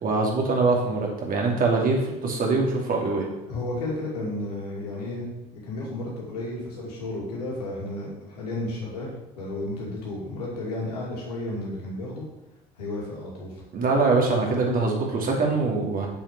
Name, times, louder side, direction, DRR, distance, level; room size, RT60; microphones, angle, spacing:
voice 1, 0.0-3.3 13.7-16.1, right 3 dB, 45° right, 0 dB, 2.6 m, -23 dB
voice 2, 3.5-9.1 9.4-12.3 12.8-13.6, left 2 dB, 85° left, -4 dB, 2.7 m, -33 dB
7.4 x 7.1 x 4.8 m, 0.99 s
hypercardioid pair, 60°, 20 cm